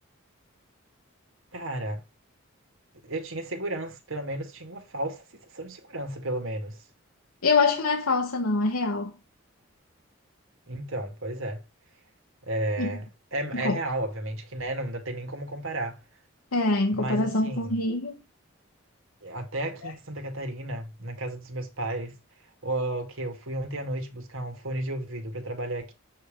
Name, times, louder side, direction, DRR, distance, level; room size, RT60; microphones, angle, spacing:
voice 1, 1.5-2.0 3.0-5.2 5.5-6.8 10.7-11.6 12.5-16.0 16.9-17.7 19.2-22.2 22.6-25.9, right 1 dB, 75° right, 2.2 m, -33 dB
voice 2, 7.4-9.1 12.8-13.0 13.5-13.8 16.5-18.2 19.8-19.9, left 3 dB, 90° left, 1.1 m, -25 dB
8.6 x 3.7 x 5.0 m
head